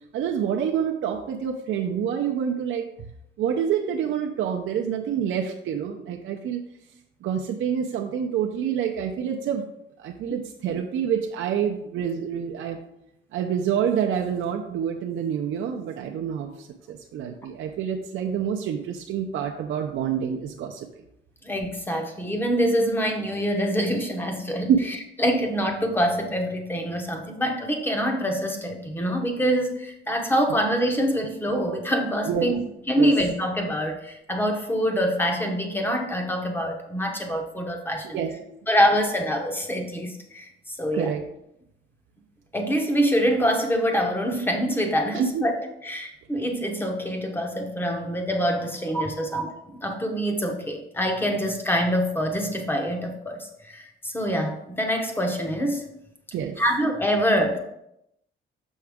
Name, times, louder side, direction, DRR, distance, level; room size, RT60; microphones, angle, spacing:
voice 1, 0.1-2.9 3.4-6.6 7.2-9.6 10.0-12.8 13.3-20.9 24.7-24.8 30.5-30.6 32.2-32.5 33.0-33.1 38.1-38.3 40.9-41.2 45.1-45.5 49.1-49.3 56.3-56.6, right 8 dB, 70° right, 1 dB, 0.6 m, -27 dB
voice 2, 21.4-38.2 38.7-40.5 40.8-41.1 42.5-55.9 56.6-57.6, equal, 10° left, 4 dB, 0.7 m, -25 dB
6.3 x 5.7 x 3.5 m, 0.81 s
cardioid pair, 170°, 21 cm